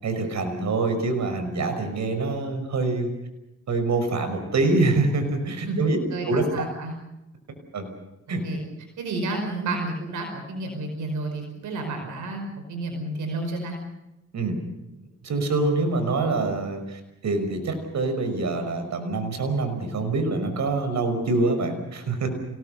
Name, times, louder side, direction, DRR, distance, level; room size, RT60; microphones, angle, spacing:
voice 1, 0.0-3.1 3.7-6.0 6.2-6.4 7.7-7.9 8.3-8.4 14.3-14.6 15.2-22.3, right 3 dB, 70° right, 7 dB, 5.8 m, -25 dB
voice 2, 6.1-6.9 8.4-8.6 9.0-13.8, right 2 dB, 85° right, 4 dB, 5.2 m, -31 dB
28.5 x 19.0 x 6.7 m, 0.92 s
cardioid pair, 60°, 30 cm